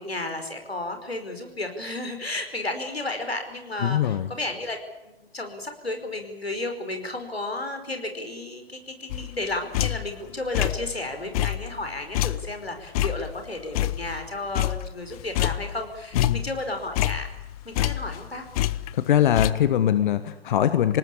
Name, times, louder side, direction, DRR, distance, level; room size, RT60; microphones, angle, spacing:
voice 1, 0.0-4.8 5.0-17.3 17.6-18.5, left 2 dB, 90° left, 6 dB, 5.1 m, -33 dB
voice 2, 3.8-4.3 16.1-16.4 18.9-21.0, left 10 dB, 55° left, 12 dB, 1.5 m, -22 dB
sound 1, 9.1-10.2 10.5-11.0 11.3-14.3 14.5-15.9 16.1-18.3 18.5-19.5, left 15 dB, 40° left, 1.0 m, -27 dB
27.0 x 19.0 x 8.6 m, 0.95 s
figure-of-eight pair, 115°, 30 cm